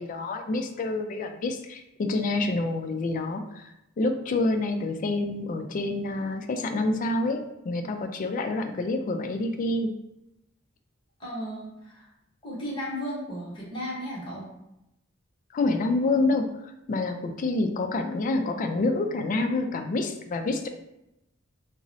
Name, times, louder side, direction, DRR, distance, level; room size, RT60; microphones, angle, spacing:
voice 1, 0.0-9.9 15.5-16.5 16.9-20.7, left 2 dB, 40° left, 6 dB, 0.3 m, -27 dB
voice 2, 11.2-12.1 12.4-14.5, equal, 25° left, -6 dB, 0.9 m, -35 dB
2.5 x 2.0 x 3.9 m, 0.88 s
head